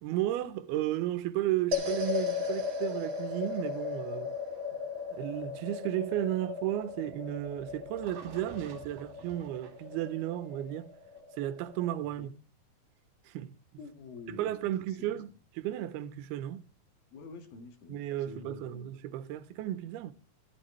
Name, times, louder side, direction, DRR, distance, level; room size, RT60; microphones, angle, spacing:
voice 1, 0.0-4.4 5.1-10.9 11.4-12.3 13.3-13.6 14.3-15.3 15.6-16.6 17.9-20.1, right 13 dB, 90° right, 2.7 m, -34 dB
sound 1, 1.7-12.1, left 5 dB, 40° right, 2.4 m, -37 dB
sound 2, 5.3-11.2, right 6 dB, 70° right, 3.5 m, -53 dB
voice 2, 13.8-15.2 17.1-18.9, left 5 dB, 70° left, 3.5 m, -48 dB
14.0 x 13.0 x 3.2 m
omnidirectional pair, 4.4 m